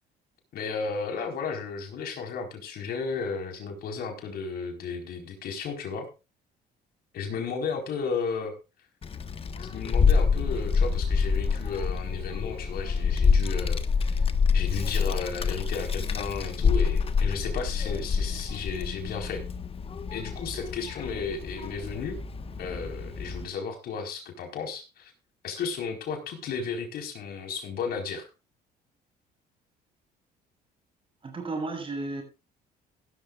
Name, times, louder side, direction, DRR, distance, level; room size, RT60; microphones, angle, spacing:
voice 1, 0.5-6.1 7.1-8.5 9.6-14.3 14.5-19.4 20.1-22.2 22.6-25.1 25.4-28.3, left 5 dB, 65° left, 4 dB, 4.5 m, -34 dB
Child speech kid speaking, 9.0-23.4, left 5 dB, 35° left, 1.3 m, -27 dB
voice 2, 31.2-32.2, right 3 dB, 30° right, 4 dB, 6.6 m, -33 dB
16.5 x 12.5 x 2.4 m, 0.30 s
cardioid pair, 110°, 17 cm